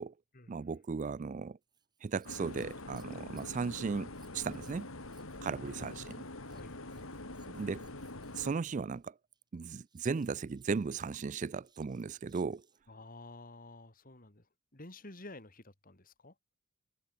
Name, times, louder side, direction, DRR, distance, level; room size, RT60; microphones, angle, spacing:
voice 1, 0.5-1.6 2.0-4.9 5.4-6.1 7.5-7.8 8.4-9.1 9.5-12.6, right 5 dB, 35° right, 0.3 m, -36 dB
Scissors, 1.6-13.0 14.9-15.5 16.2-16.3, right 6 dB, 20° right, 7.7 m, -69 dB
sound 1, 2.2-8.5, left 2 dB, 80° left, 4.3 m, -45 dB
voice 2, 5.5-7.3 12.9-14.5 14.7-16.3, left 2 dB, 40° left, 2.7 m, -52 dB
head